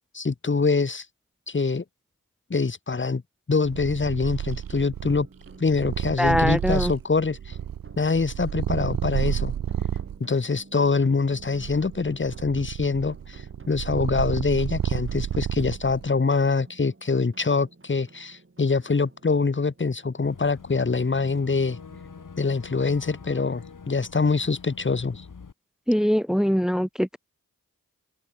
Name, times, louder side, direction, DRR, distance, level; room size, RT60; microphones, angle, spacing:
voice 1, 0.1-1.0 1.5-1.8 2.5-3.2 3.5-5.3 5.6-7.6 8.0-9.5 10.2-21.8 22.4-25.2, left 4 dB, 35° left, 1.4 m, -24 dB
Purr, 3.6-10.2 10.8-16.1, right 9 dB, 75° right, 0.8 m, -30 dB
sound 1, 4.5-23.7, right 3 dB, 35° right, 6.2 m, -52 dB
voice 2, 6.2-6.9 25.9-27.2, equal, ahead, 1.3 m, -22 dB
Boat Water vehicle / Engine, 20.2-25.5, left 5 dB, 65° left, 3.8 m, -44 dB
cardioid pair, 45°, 35 cm